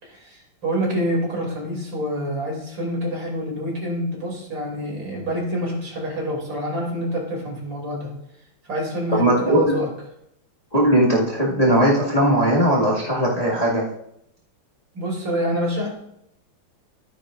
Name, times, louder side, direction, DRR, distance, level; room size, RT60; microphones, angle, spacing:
voice 1, 0.0-8.1 8.6-9.9 14.9-15.9, equal, 60° right, -1 dB, 3.4 m, -27 dB
voice 2, 9.1-9.6 10.7-13.8, right 1 dB, 20° left, -6 dB, 1.9 m, -18 dB
12.5 x 9.5 x 2.5 m, 0.76 s
omnidirectional pair, 2.3 m